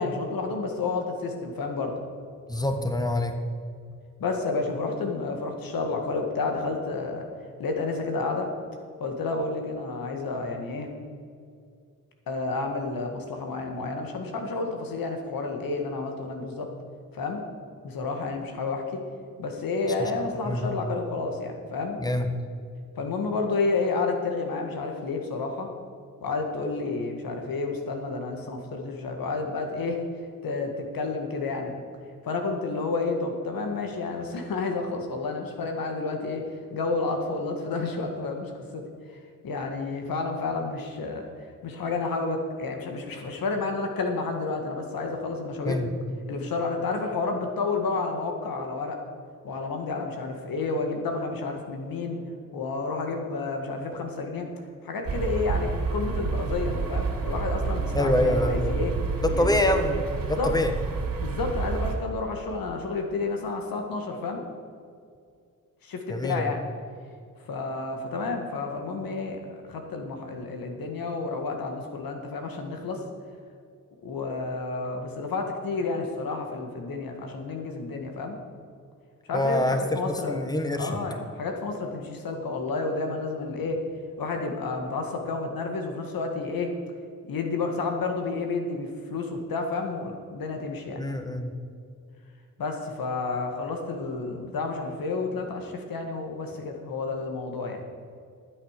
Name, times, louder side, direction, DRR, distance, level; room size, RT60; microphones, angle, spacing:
voice 1, 0.0-1.9 4.2-7.2 7.6-8.5 9.0-10.9 12.3-16.7 17.1-17.4 17.8-19.0 19.4-22.0 23.0-25.7 26.2-30.0 30.4-31.7 32.2-38.8 39.4-41.2 41.6-45.8 46.3-49.0 49.4-52.2 52.5-54.5 54.8-59.0 59.3-59.8 60.4-60.5 61.2-64.4 65.8-66.6 67.5-69.4 69.7-73.0 74.0-78.4 79.3-80.4 80.7-83.8 84.2-86.7 87.2-91.0 92.6-97.8, left 3 dB, 85° left, 3 dB, 1.8 m, -30 dB
voice 2, 2.5-3.3 20.4-20.7 22.0-22.3 45.6-45.9 57.9-58.8 59.2-60.0 60.3-60.7 66.1-66.5 79.3-80.9 91.0-91.5, left 1 dB, 10° left, 6 dB, 1.4 m, -25 dB
sound 1, 55.0-61.9, right 4 dB, 80° right, 2.9 m, -29 dB
12.5 x 8.2 x 6.6 m, 2.3 s
cardioid pair, 65°, 34 cm